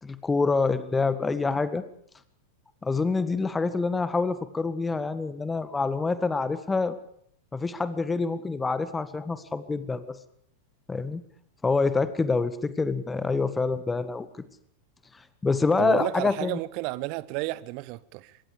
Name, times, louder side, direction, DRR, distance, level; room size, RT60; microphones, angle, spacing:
voice 1, 0.0-1.8 2.8-7.0 7.5-10.2 10.9-11.2 11.6-14.3 15.4-16.6, left 4 dB, 10° left, 1.8 m, -26 dB
voice 2, 15.8-18.4, right 19 dB, 45° right, 1.1 m, -32 dB
25.5 x 23.0 x 5.1 m
figure-of-eight pair, 90°, 0 cm